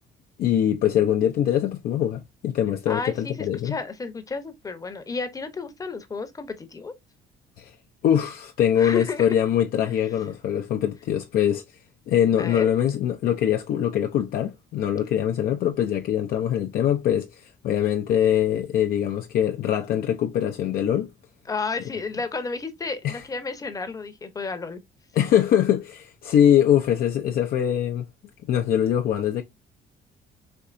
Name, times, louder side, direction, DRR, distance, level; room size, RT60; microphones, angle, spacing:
voice 1, 0.4-3.8 7.6-7.7 8.0-11.6 12.1-21.1 23.0-23.2 25.1-28.1 28.5-29.4, left 10 dB, 60° left, 0.5 m, -23 dB
voice 2, 2.9-6.9 8.8-9.3 12.4-12.7 21.5-24.8, left 4 dB, 20° left, 0.7 m, -32 dB
4.4 x 2.7 x 2.5 m
cardioid pair, 110°, 17 cm